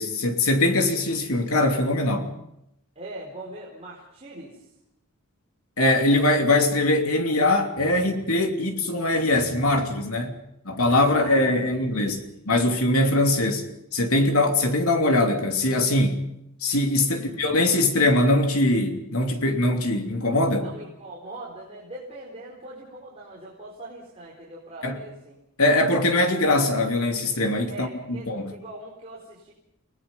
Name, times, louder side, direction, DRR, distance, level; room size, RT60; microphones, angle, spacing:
voice 1, 0.0-2.3 5.8-10.4 10.6-13.7 13.9-16.2 16.6-20.7 24.8-25.0 25.6-28.5, left 2 dB, 80° left, 3.0 m, -22 dB
voice 2, 2.9-4.7 11.2-12.2 17.1-17.3 20.6-25.3 27.7-29.5, right 2 dB, 30° right, 4.4 m, -41 dB
30.0 x 19.5 x 5.5 m
head